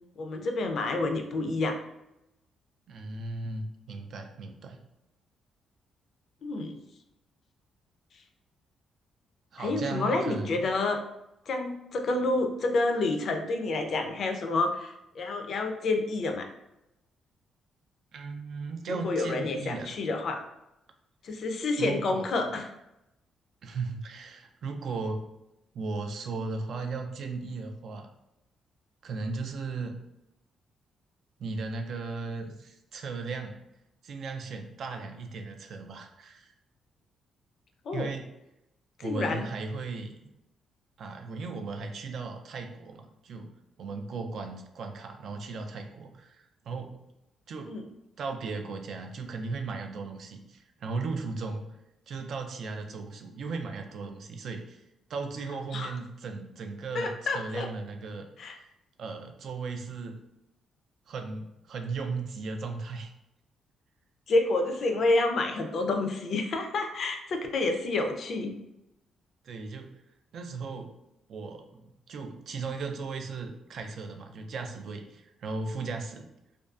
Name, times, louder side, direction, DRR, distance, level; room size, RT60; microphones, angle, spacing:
voice 1, 0.2-1.8 6.4-6.8 9.6-11.0 11.5-16.5 18.9-20.4 21.2-22.7 37.9-38.1 39.0-39.5 47.6-47.8 55.7-56.0 56.9-57.7 58.4-58.6 64.3-68.5, left 2 dB, 55° left, 5 dB, 0.4 m, -29 dB
voice 2, 2.9-4.8 9.5-10.7 18.1-20.0 21.8-22.5 23.6-25.2 25.7-28.1 29.0-30.0 31.4-33.6 34.0-36.5 37.9-38.3 39.0-40.3 41.0-43.5 43.8-47.1 47.5-47.8 48.2-51.7 52.1-54.8 55.1-58.5 59.0-60.2 61.1-63.1 69.4-69.9 70.3-70.9 71.3-76.3, right 4 dB, 65° right, 5 dB, 0.3 m, -36 dB
2.4 x 2.2 x 2.3 m, 0.87 s
cardioid pair, 110°, 0 cm